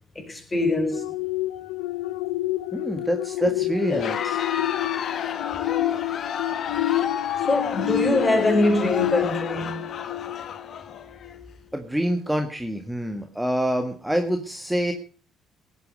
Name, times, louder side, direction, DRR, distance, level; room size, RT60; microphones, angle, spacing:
voice 1, 0.1-1.1 3.4-3.5 3.9-4.1 7.5-9.9, left 1 dB, 25° left, 4.8 m, -23 dB
sound 1, 0.9-10.8 11.2-11.5, left 15 dB, 85° left, 0.5 m, -28 dB
voice 2, 2.7-4.4 11.7-14.9, right 1 dB, 5° right, 1.7 m, -26 dB
Crowd, 3.8-11.3, left 8 dB, 55° left, 1.3 m, -31 dB
17.5 x 8.5 x 5.2 m
hypercardioid pair, 60°, 0 cm